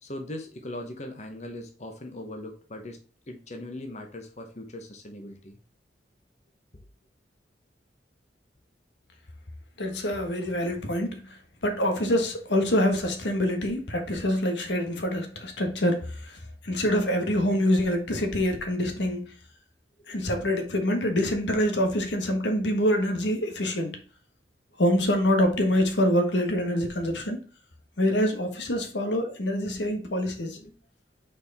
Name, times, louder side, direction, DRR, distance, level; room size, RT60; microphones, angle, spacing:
voice 1, 0.0-3.0 3.3-5.6 20.0-20.2 30.5-30.7, left 1 dB, 40° left, 1.0 m, -40 dB
voice 2, 9.8-11.2 11.6-16.4 16.6-19.3 20.1-24.0 24.8-27.4 28.0-30.6, equal, 85° left, 1.5 m, -25 dB
6.1 x 4.5 x 4.2 m
head